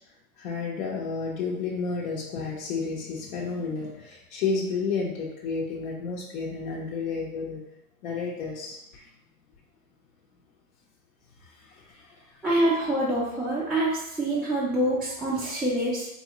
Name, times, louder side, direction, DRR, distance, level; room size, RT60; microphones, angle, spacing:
voice 1, 0.4-7.6 8.0-9.1 11.6-12.2, left 4 dB, 70° left, -3 dB, 0.9 m, -31 dB
voice 2, 12.4-16.1, right 1 dB, ahead, -9 dB, 0.3 m, -26 dB
4.3 x 2.7 x 2.9 m, 0.85 s
hypercardioid pair, 125°, 43 cm